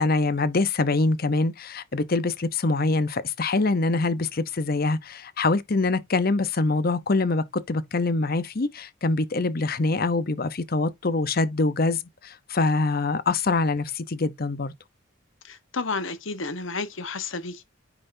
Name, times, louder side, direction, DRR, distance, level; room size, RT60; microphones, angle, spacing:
voice 1, 0.0-14.7, left 3 dB, 45° left, 0.8 m, -24 dB
voice 2, 15.4-17.6, left 3 dB, 65° left, 1.2 m, -31 dB
9.3 x 5.6 x 2.7 m
head